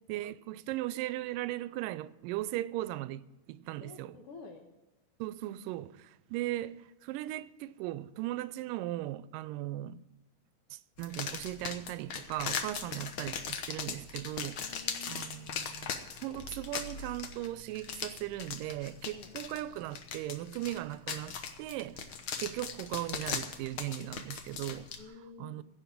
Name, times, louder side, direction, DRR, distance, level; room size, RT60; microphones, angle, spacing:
voice 1, 0.1-4.1 5.2-10.0 10.7-14.7 15.1-16.0 16.2-22.1 22.4-24.9 25.4-25.6, right 15 dB, 85° right, 2.2 m, -38 dB
voice 2, 3.8-4.7 14.6-15.5 19.1-19.3 25.0-25.6, left 5 dB, 60° left, 1.7 m, -50 dB
sound 1, 11.0-25.0, left 6 dB, 75° left, 1.1 m, -39 dB
16.0 x 5.9 x 8.4 m
omnidirectional pair, 3.8 m